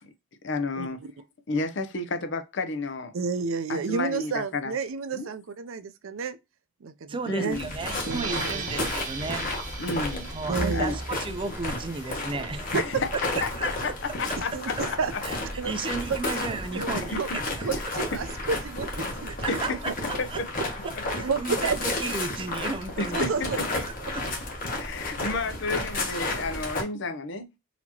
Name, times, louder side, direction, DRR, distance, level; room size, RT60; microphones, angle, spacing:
voice 1, 0.4-1.0 1.5-3.1 3.7-4.7 5.1-5.3 7.2-7.7 9.8-10.3 10.7-11.0 12.7-13.9 14.2-14.7 16.9-17.2 19.5-19.6 20.2-20.5 23.0-23.5 24.7-27.5, left 3 dB, 65° left, 0.7 m, -31 dB
voice 2, 3.1-6.4 6.8-7.6 8.0-8.6 10.5-10.9 12.7-12.8 14.5-15.1 15.6-15.7 16.1-16.2 16.7-16.9 17.2-17.3 17.6-19.6 19.9-20.0 21.1-22.1 23.1-24.1, right 5 dB, 85° right, 0.5 m, -31 dB
voice 3, 7.1-9.5 10.3-12.7 13.4-13.7 15.2-15.4 15.6-17.4 19.3-20.4 20.8-23.2 23.8-24.2, right 4 dB, 25° right, 0.4 m, -34 dB
sound 1, 7.5-26.8, left 2 dB, 45° left, 1.2 m, -32 dB
sound 2, 7.7-13.0, right 5 dB, 40° right, 1.1 m, -40 dB
4.1 x 2.9 x 2.8 m
head